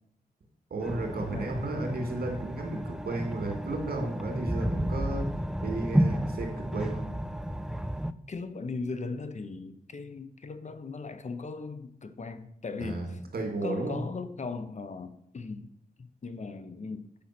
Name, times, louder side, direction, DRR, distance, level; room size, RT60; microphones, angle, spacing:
voice 1, 0.7-5.3 5.6-7.1 12.8-14.0, right 2 dB, 85° right, 2.2 m, -34 dB
sound 1, 0.8-8.1, equal, 5° right, 0.4 m, -31 dB
voice 2, 8.3-13.2 13.6-15.7 16.0-17.1, left 4 dB, 50° left, 0.7 m, -38 dB
8.7 x 5.6 x 5.9 m
wide cardioid pair, 95°, 16 cm